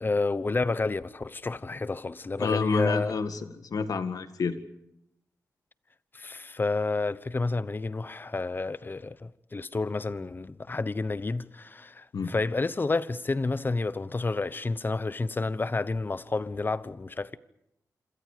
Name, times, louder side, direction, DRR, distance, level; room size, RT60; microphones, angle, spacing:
voice 1, 0.0-3.2 6.1-17.4, left 3 dB, 35° left, 1.0 m, -30 dB
voice 2, 2.4-4.6 12.1-12.3, left 4 dB, 75° left, 1.9 m, -29 dB
27.5 x 26.5 x 5.1 m
wide cardioid pair, 85°, 6 cm